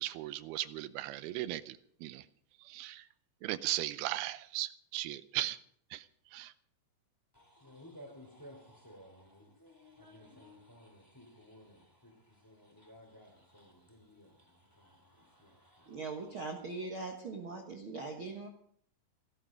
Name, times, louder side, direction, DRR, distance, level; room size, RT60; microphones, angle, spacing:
voice 1, 0.0-2.3 2.6-3.1 3.4-5.6 5.9-6.1 6.3-6.5, right 15 dB, 90° right, 2.7 m, -37 dB
voice 2, 7.3-12.1 12.4-16.0, left 1 dB, 5° left, 3.0 m, -56 dB
voice 3, 15.9-18.5, right 3 dB, 55° right, 1.5 m, -41 dB
17.0 x 13.0 x 5.1 m
omnidirectional pair, 4.4 m